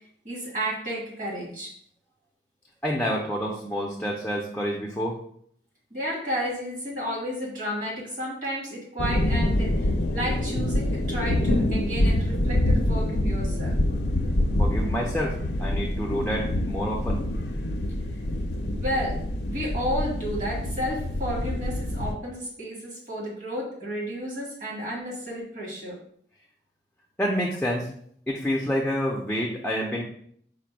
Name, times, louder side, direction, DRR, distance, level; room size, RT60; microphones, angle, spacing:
voice 1, 0.2-1.7 5.9-13.8 18.6-26.0, equal, 45° right, -3 dB, 1.6 m, -32 dB
voice 2, 2.8-5.2 14.6-15.3 15.6-17.2 27.2-27.9 28.3-30.0, equal, 5° left, -2 dB, 0.5 m, -28 dB
sound 1, 9.0-22.1, left 1 dB, 70° left, 0.5 m, -26 dB
4.9 x 2.2 x 4.5 m, 0.63 s
head